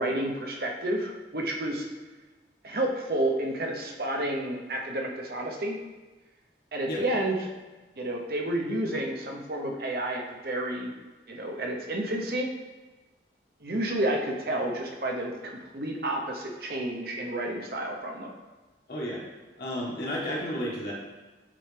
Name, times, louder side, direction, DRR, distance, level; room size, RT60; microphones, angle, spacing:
voice 1, 0.0-1.9 2.6-5.8 6.7-7.5 8.0-10.9 11.3-12.5 13.6-18.3, right 1 dB, 60° right, 0 dB, 0.8 m, -30 dB
voice 2, 18.9-19.2 19.6-20.9, equal, 55° left, -5 dB, 1.7 m, -32 dB
7.6 x 4.3 x 3.4 m, 1.2 s
head